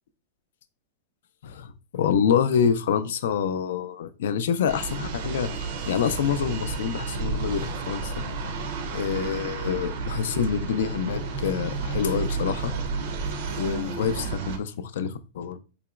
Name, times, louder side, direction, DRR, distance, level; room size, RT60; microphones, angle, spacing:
voice 1, 1.4-8.2 8.9-12.7 13.6-15.6, left 7 dB, 70° left, 0.4 m, -27 dB
sound 1, 4.7-14.6, right 4 dB, 50° right, 0.5 m, -31 dB
4.0 x 2.9 x 2.3 m
supercardioid pair, 175°, 0 cm